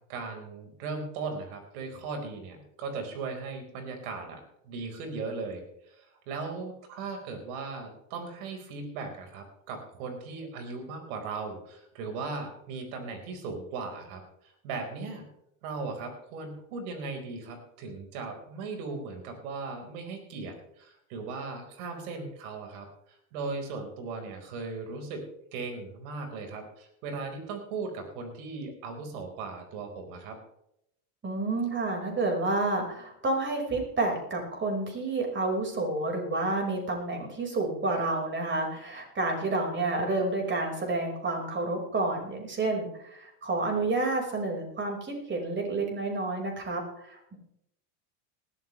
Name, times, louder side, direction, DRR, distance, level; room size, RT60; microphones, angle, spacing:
voice 1, 0.0-14.2 14.6-15.2 15.6-22.9 23.3-25.2 25.5-30.4, right 4 dB, 75° right, 4 dB, 4.8 m, -38 dB
voice 2, 31.2-47.3, right 2 dB, 25° right, 2 dB, 5.2 m, -30 dB
19.0 x 13.0 x 3.3 m, 0.76 s
supercardioid pair, 120°, 42 cm